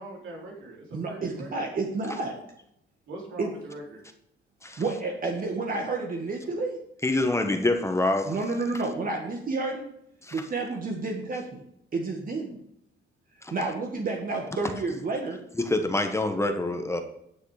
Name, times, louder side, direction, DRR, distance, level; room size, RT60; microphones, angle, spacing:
voice 1, 0.0-1.8 3.1-4.0, right 2 dB, 75° right, -1 dB, 3.5 m, -42 dB
voice 2, 0.9-2.4 3.4-3.5 4.8-6.8 8.3-9.8 10.3-11.6 11.9-12.6 13.5-15.4, right 3 dB, 45° right, 1 dB, 1.8 m, -30 dB
voice 3, 7.0-8.4 10.2-10.5 13.4-13.5 15.6-17.0, left 2 dB, 15° left, 6 dB, 1.3 m, -26 dB
10.5 x 6.4 x 5.0 m, 0.75 s
cardioid pair, 90°, 20 cm